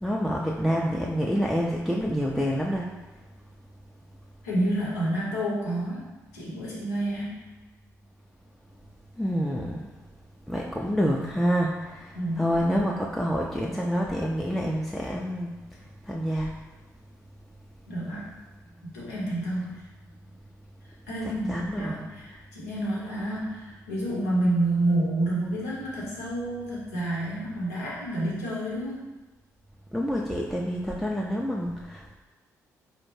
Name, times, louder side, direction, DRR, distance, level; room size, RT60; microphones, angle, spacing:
voice 1, 0.0-2.9 9.2-9.9 10.5-15.5 16.1-16.5 21.2-22.0 29.9-32.1, equal, ahead, -3 dB, 0.4 m, -27 dB
voice 2, 4.4-7.4 12.1-12.5 17.9-18.4 18.8-19.8 21.1-29.0, right 1 dB, 85° left, -6 dB, 0.8 m, -29 dB
4.2 x 2.1 x 3.0 m, 1.2 s
hypercardioid pair, 40°, 8 cm